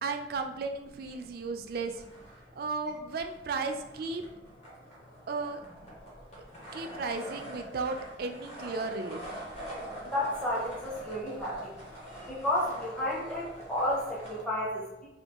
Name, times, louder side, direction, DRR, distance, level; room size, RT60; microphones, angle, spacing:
voice 1, 0.0-2.0 2.6-4.2 5.3-5.6 6.7-9.4, right 4 dB, 55° right, 5 dB, 0.3 m, -34 dB
sound 1, 0.9-1.6 1.9-14.4, right 1 dB, 40° left, 1.0 m, -45 dB
voice 2, 10.0-11.6 12.3-15.1, left 1 dB, 5° left, -7 dB, 0.6 m, -31 dB
3.4 x 2.3 x 2.8 m, 0.94 s
head